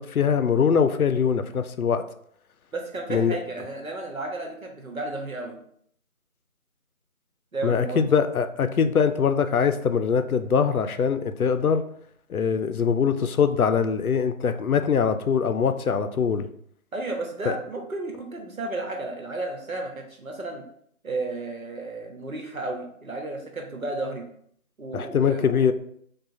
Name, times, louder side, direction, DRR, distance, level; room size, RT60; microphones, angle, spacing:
voice 1, 0.0-2.0 3.1-3.4 7.6-11.8 12.3-16.5 17.5-17.6 24.9-25.7, left 6 dB, 90° left, 9 dB, 0.6 m, -22 dB
voice 2, 2.7-5.6 7.5-8.0 16.9-20.6 21.0-24.3 24.8-25.7, right 2 dB, 75° right, 2 dB, 1.1 m, -33 dB
4.7 x 2.4 x 2.7 m, 0.65 s
figure-of-eight pair, 180°, 42 cm